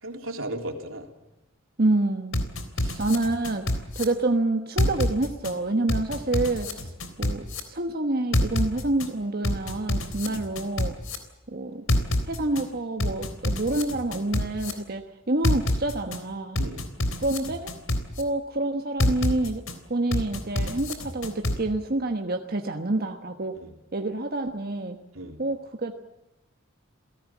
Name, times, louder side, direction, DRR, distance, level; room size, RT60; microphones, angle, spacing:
voice 1, 0.0-1.1 2.8-3.0 10.2-10.4 16.6-16.9 23.6-23.8 25.1-25.4, right 1 dB, 85° right, 3 dB, 3.6 m, -36 dB
voice 2, 1.8-2.5 3.0-6.9 7.2-10.9 11.5-11.8 12.3-16.6 17.2-17.7 18.2-19.6 19.9-23.6 23.9-25.0 25.4-25.9, right 2 dB, 50° right, 5 dB, 1.3 m, -27 dB
sound 1, 2.3-4.0 4.8-5.5 5.9-7.6 8.3-9.1 9.4-11.2 11.9-12.6 13.0-14.7 15.4-16.2 16.6-18.2 19.0-19.7 20.1-21.6, left 1 dB, 85° left, 3.5 m, -26 dB
28.5 x 18.0 x 7.4 m, 1.0 s
head